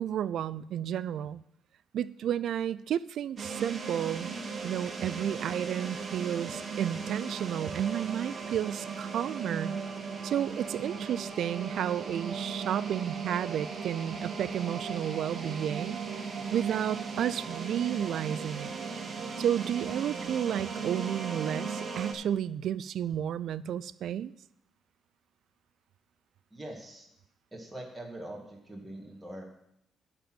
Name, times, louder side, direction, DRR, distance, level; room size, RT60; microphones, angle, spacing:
voice 1, 0.0-1.4 1.9-4.3 4.6-9.7 10.2-16.0 16.5-18.8 19.4-24.3, right 10 dB, 70° right, 16 dB, 0.3 m, -32 dB
sound 1, 3.4-22.1, right 5 dB, 35° right, 1.2 m, -37 dB
voice 2, 26.5-27.1 27.5-29.4, right 1 dB, 10° right, -2 dB, 1.8 m, -43 dB
10.5 x 4.4 x 7.6 m, 0.76 s
cardioid pair, 115°, 0 cm